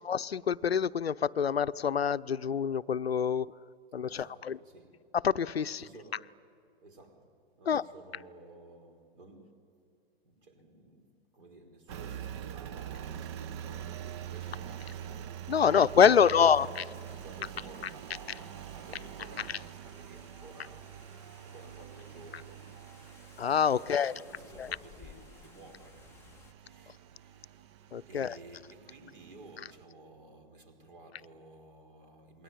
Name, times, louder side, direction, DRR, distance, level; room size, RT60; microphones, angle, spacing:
voice 1, 0.0-3.5 3.9-4.6 5.1-5.9 7.7-7.8 15.5-16.9 17.8-17.9 18.9-19.0 19.4-19.6 23.4-24.1 24.6-24.7 27.9-28.4, left 7 dB, 70° left, 0.7 m, -26 dB
voice 2, 4.0-5.1 5.6-6.3 6.8-9.7 10.2-21.1 21.3-22.8 23.7-26.2 26.6-27.7 28.1-32.4, right 2 dB, 55° right, 5.1 m, -54 dB
Engine, 11.9-29.8, right 9 dB, 25° right, 0.6 m, -45 dB
sound 1, 16.4-26.5, left 7 dB, 10° left, 0.7 m, -59 dB
27.5 x 21.5 x 9.9 m
figure-of-eight pair, 115°, 32 cm